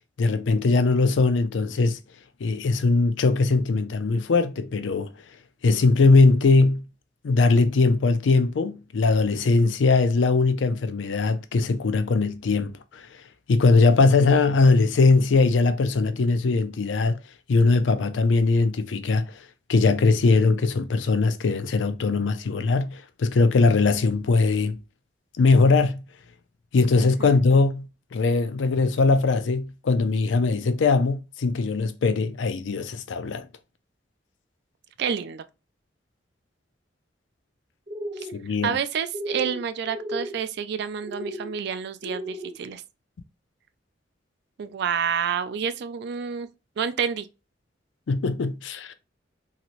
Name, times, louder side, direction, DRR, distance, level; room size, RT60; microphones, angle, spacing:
voice 1, 0.2-2.0 2.4-5.1 5.6-6.8 7.2-13.0 13.5-17.2 17.5-19.3 19.7-24.8 25.4-26.0 26.7-33.4 38.3-38.7 48.1-48.9, left 3 dB, 80° left, 0.4 m, -21 dB
voice 2, 27.0-27.4 35.0-35.4 38.2-38.3 38.6-42.8 44.6-46.5 46.8-47.3, right 7 dB, 65° right, 0.3 m, -29 dB
sound 1, 37.9-38.4 39.1-39.6 39.8-40.3 41.0-41.5 42.0-42.5, equal, 40° right, 0.9 m, -34 dB
3.0 x 2.8 x 2.5 m
head